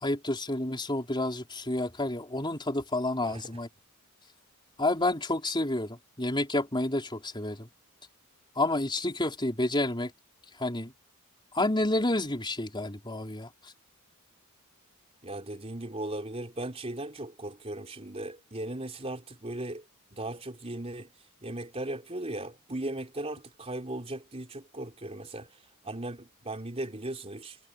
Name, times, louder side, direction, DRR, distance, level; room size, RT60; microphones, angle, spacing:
voice 1, 0.0-3.7 4.8-7.7 8.6-10.1 10.6-10.9 11.5-13.5, left 2 dB, 20° left, 4.5 m, -29 dB
voice 2, 15.2-19.8 20.1-21.1 21.4-25.6 25.8-27.6, right 1 dB, 30° right, 3.8 m, -37 dB
head